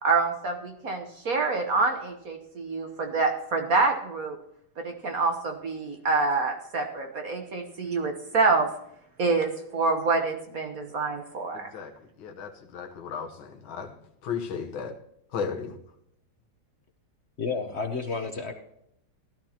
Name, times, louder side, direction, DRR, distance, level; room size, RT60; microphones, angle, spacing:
voice 1, 0.0-4.4 4.8-8.7 9.2-11.7, right 3 dB, 50° right, 1.3 m, -26 dB
voice 2, 12.2-13.9 14.2-14.9 15.3-15.7, left 6 dB, 70° left, 1.9 m, -34 dB
voice 3, 17.4-18.5, left 4 dB, 55° left, 0.7 m, -31 dB
16.5 x 12.0 x 2.9 m
omnidirectional pair, 2.3 m